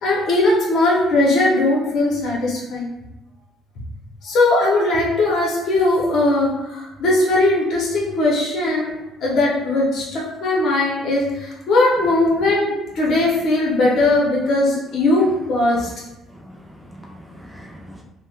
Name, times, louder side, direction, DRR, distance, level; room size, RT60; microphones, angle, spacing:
voice 1, 0.0-2.9 4.2-8.9 9.2-15.9, left 2 dB, 60° left, -4 dB, 1.0 m, -19 dB
voice 2, 16.3-18.0, equal, 5° right, -1 dB, 0.4 m, -42 dB
3.5 x 2.2 x 2.5 m, 0.95 s
cardioid pair, 130°, 0 cm